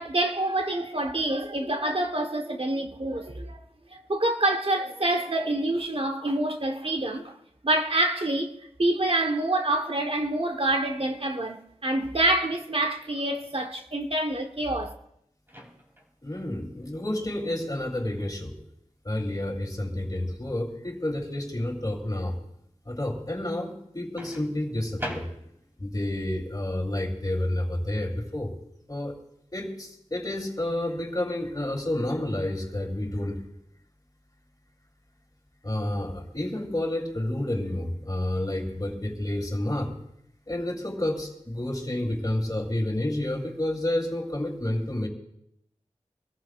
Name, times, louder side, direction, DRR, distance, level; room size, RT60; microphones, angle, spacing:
voice 1, 0.0-3.6 3.9-7.3 7.6-8.5 8.8-14.9, right 1 dB, 50° right, 1.2 m, -27 dB
Microwave oven, 15.5-16.2 18.1-18.4 24.2-25.8, equal, 20° right, 3.1 m, -40 dB
voice 2, 16.2-18.5 19.0-22.4 22.9-25.3 25.8-28.5 28.9-29.1 29.5-33.4 35.6-40.0 40.5-45.1, left 1 dB, 30° left, 3.2 m, -30 dB
25.0 x 14.0 x 2.5 m
wide cardioid pair, 45°, 12 cm